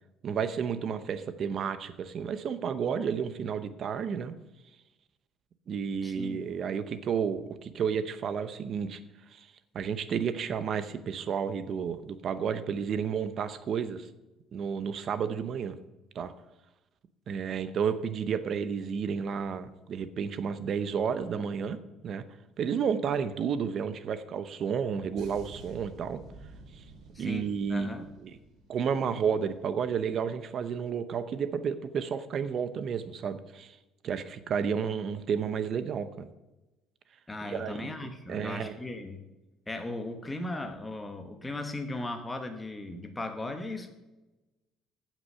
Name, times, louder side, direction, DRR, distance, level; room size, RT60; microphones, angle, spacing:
voice 1, 0.2-4.3 5.7-9.0 9.3-14.1 14.5-15.8 16.1-16.3 17.3-22.2 22.6-26.2 26.7-26.8 27.2-28.4 28.7-33.8 34.0-36.3 37.4-38.8, right 7 dB, 40° right, 12 dB, 0.8 m, -31 dB
voice 2, 6.0-6.4 27.1-28.1 37.3-39.3 39.7-43.9, left 2 dB, 10° left, 5 dB, 1.1 m, -37 dB
sound 1, 25.2-29.7 30.0-30.3, right 3 dB, 55° right, 2.6 m, -51 dB
16.0 x 6.1 x 5.6 m, 1.0 s
cardioid pair, 165°, 0 cm